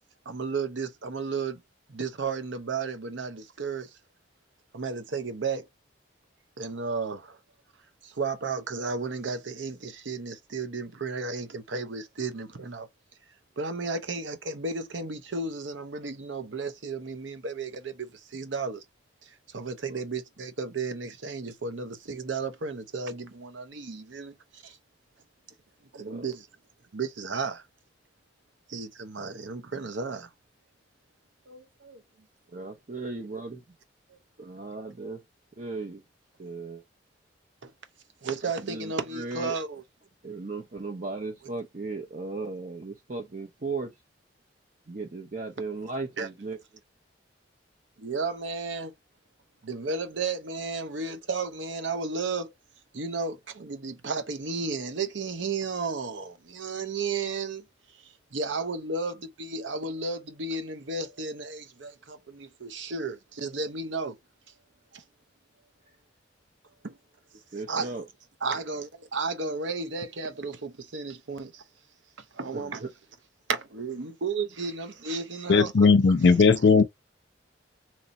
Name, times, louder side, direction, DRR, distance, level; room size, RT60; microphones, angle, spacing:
voice 1, 0.3-1.6 1.9-3.9 4.7-5.7 6.6-7.4 8.0-12.9 13.6-18.8 19.2-24.8 25.9-26.5 26.9-27.6 28.7-30.3 31.5-32.0 34.1-34.2 37.6-37.7 38.2-39.8 46.2-46.3 48.0-48.9 49.6-52.5 52.9-57.6 58.0-64.1 64.9-65.0 66.8-67.0 67.7-67.9 68.4-71.6 72.3-72.8 73.5-76.5, right 4 dB, 75° right, 0.8 m, -33 dB
voice 2, 32.5-33.6 34.4-35.2 35.6-36.0 36.4-36.8 38.6-39.5 40.2-43.9 44.9-46.6 67.5-68.0 72.5-72.9, right 3 dB, 40° right, 0.6 m, -36 dB
voice 3, 75.5-76.8, left 4 dB, 60° left, 0.5 m, -18 dB
3.0 x 2.7 x 4.0 m
head